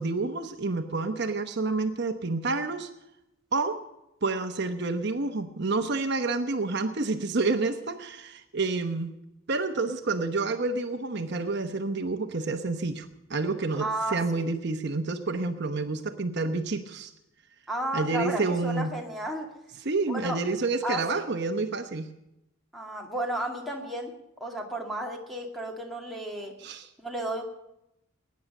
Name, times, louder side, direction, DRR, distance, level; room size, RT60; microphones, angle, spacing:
voice 1, 0.0-2.9 3.5-3.8 4.2-9.1 9.5-17.1 17.9-18.9 19.8-22.1 26.6-26.9, right 3 dB, 55° right, 7 dB, 1.0 m, -29 dB
voice 2, 13.7-14.4 17.7-19.5 20.1-20.4 20.8-21.2 22.7-24.1 24.4-26.5 27.0-27.4, right 1 dB, ahead, 0 dB, 2.3 m, -33 dB
19.5 x 9.6 x 6.6 m, 0.88 s
head